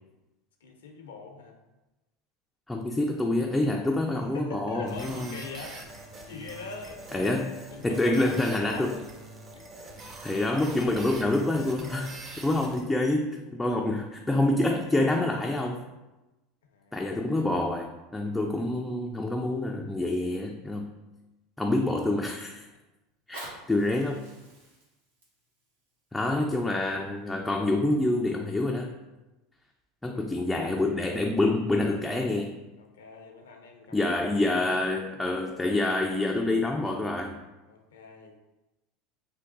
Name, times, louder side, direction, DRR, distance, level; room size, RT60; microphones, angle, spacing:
voice 1, 0.6-1.6 4.3-7.4 7.7-8.9 9.5-9.7 16.7-17.1 22.7-22.8 30.1-30.5 32.8-34.2 34.6-35.2 37.7-38.4, left 4 dB, 80° left, 3 dB, 0.5 m, -43 dB
voice 2, 2.7-5.3 7.1-7.5 7.8-9.0 10.2-12.1 12.4-15.8 16.9-20.9 21.6-22.7 23.3-24.2 26.1-28.9 30.0-32.5 33.9-37.4, left 2 dB, 10° left, 1 dB, 0.3 m, -27 dB
sound 1, 4.9-12.8, right 2 dB, 40° right, 0.7 m, -44 dB
Fire, 23.1-28.0 28.7-28.8, right 1 dB, 85° right, 1.0 m, -49 dB
3.5 x 2.3 x 3.8 m, 1.0 s
hypercardioid pair, 85°, 0 cm